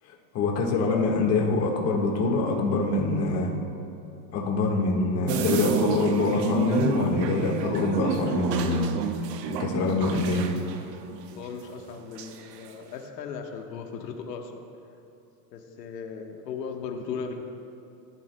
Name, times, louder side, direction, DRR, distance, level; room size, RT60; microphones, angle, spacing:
voice 1, 0.3-3.5 4.3-8.9 9.5-10.5, left 3 dB, 30° left, 0 dB, 1.6 m, -25 dB
sound 1, 5.3-11.9 12.2-12.7, right 8 dB, 80° right, 1.0 m, -30 dB
voice 2, 11.4-14.6 15.5-17.3, left 6 dB, 90° left, 3 dB, 1.4 m, -37 dB
18.0 x 11.5 x 2.2 m, 2.9 s
supercardioid pair, 140°, 48 cm